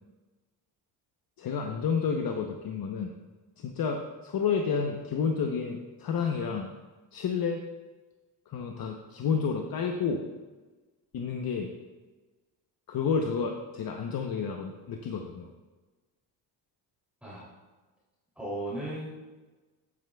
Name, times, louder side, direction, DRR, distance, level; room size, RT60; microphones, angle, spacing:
voice 1, 1.4-3.1 3.6-6.7 7.1-7.6 8.5-10.2 11.1-11.7 12.9-15.5, left 6 dB, 50° left, 3 dB, 0.9 m, -30 dB
voice 2, 18.4-19.1, right 1 dB, 5° right, -8 dB, 2.9 m, -35 dB
11.5 x 8.7 x 2.3 m, 1.2 s
cardioid pair, 100°, 45 cm